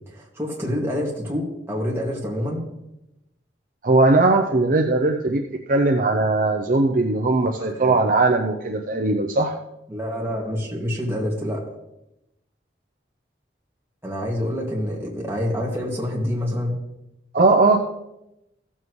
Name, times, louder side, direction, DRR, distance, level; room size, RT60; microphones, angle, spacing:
voice 1, 0.1-2.6 7.6-7.9 9.9-11.7 14.0-16.8, equal, 15° right, -4 dB, 2.2 m, -27 dB
voice 2, 3.8-9.5 17.3-17.8, right 2 dB, 45° right, 2 dB, 0.6 m, -19 dB
15.5 x 7.3 x 3.2 m, 0.88 s
head